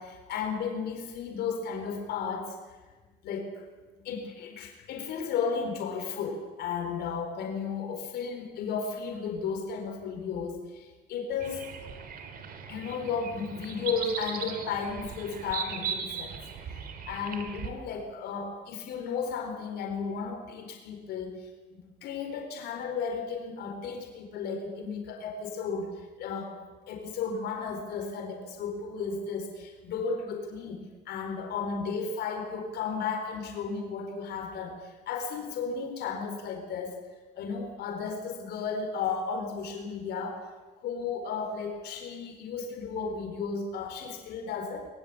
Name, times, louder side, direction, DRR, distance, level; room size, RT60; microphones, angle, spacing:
voice 1, 0.0-2.6 3.2-3.7 3.9-11.6 12.7-16.4 16.7-26.5 26.9-37.0 37.4-40.5 40.8-44.9, left 5 dB, 75° left, 3 dB, 4.4 m, -34 dB
sound 1, 11.4-17.7, right 7 dB, 60° right, 3.6 m, -38 dB
22.5 x 22.0 x 8.7 m, 1.3 s
cardioid pair, 110°, 17 cm